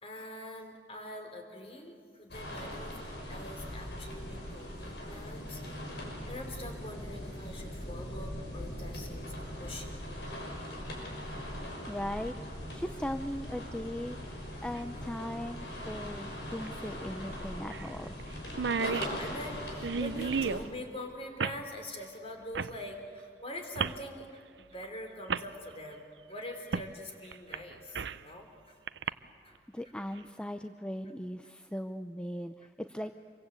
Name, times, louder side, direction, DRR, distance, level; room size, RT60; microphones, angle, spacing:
voice 1, 0.0-10.0 10.3-10.4 10.7-10.8 11.1-11.2 11.5-11.6 11.9-12.0 18.8-28.8 29.1-29.2 29.4-29.6, left 1 dB, 35° left, 4 dB, 3.6 m, -44 dB
sound 1, 2.3-20.6, equal, 70° left, 6.1 m, -41 dB
voice 2, 11.9-12.3 12.7-14.2 14.6-18.2 29.7-33.1, equal, 5° left, 8 dB, 0.6 m, -38 dB
sound 2, 14.8-14.9 16.6-16.7 17.1-17.2 17.7-17.9 18.2-18.3 18.5-20.7 21.4-21.6 22.5-22.8 23.8-24.0 24.8-24.9 25.3-25.5 26.7-26.9 27.3-28.3 28.9-29.1, right 5 dB, 80° right, 0.6 m, -33 dB
26.5 x 23.5 x 8.2 m, 2.2 s
head